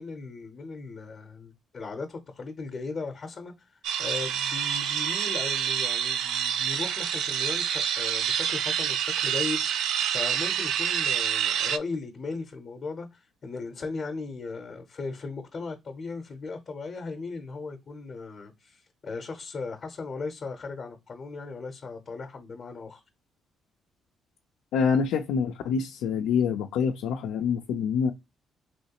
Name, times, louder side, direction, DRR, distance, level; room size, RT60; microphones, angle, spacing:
voice 1, 0.0-23.0, left 4 dB, 45° left, 0.7 m, -37 dB
sound 1, 3.8-11.8, right 9 dB, 85° right, 0.3 m, -27 dB
voice 2, 24.7-28.1, left 6 dB, 90° left, 0.4 m, -26 dB
3.1 x 3.1 x 2.8 m
cardioid pair, 90°, 0 cm